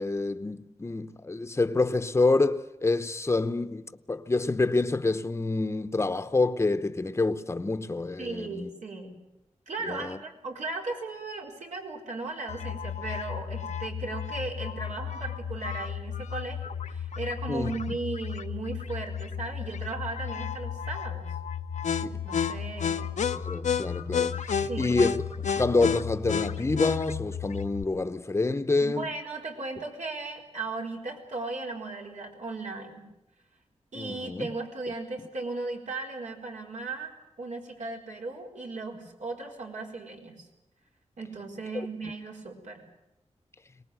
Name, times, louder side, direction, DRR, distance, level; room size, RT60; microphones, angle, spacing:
voice 1, 0.0-8.7 9.8-10.2 17.5-18.0 22.0-22.2 23.3-25.2 25.6-29.1 33.9-34.5 41.7-41.9, left 3 dB, 20° left, 0.8 m, -27 dB
voice 2, 8.2-9.1 9.7-21.3 22.1-23.1 24.7-25.0 28.8-33.1 33.9-40.5 41.2-42.8, right 3 dB, 85° right, 4.4 m, -36 dB
sound 1, 12.5-27.8, left 7 dB, 90° left, 0.9 m, -32 dB
23.5 x 19.5 x 9.1 m
wide cardioid pair, 120°, 12 cm